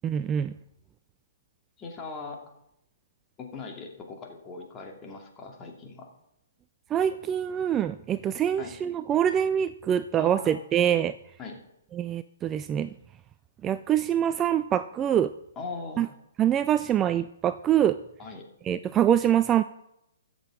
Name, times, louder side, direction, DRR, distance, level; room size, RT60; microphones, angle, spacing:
voice 1, 0.0-0.5 6.9-11.1 12.0-12.9 13.6-15.3 16.0-16.1 16.4-18.0 18.7-19.6, right 10 dB, 20° right, 13 dB, 0.3 m, -24 dB
voice 2, 1.8-2.4 3.4-6.1 8.6-8.7 10.2-10.6 11.4-11.6 15.6-16.1 18.2-18.5, left 3 dB, 20° left, 1 dB, 2.4 m, -40 dB
22.0 x 7.7 x 3.7 m, 0.82 s
figure-of-eight pair, 125°, 0 cm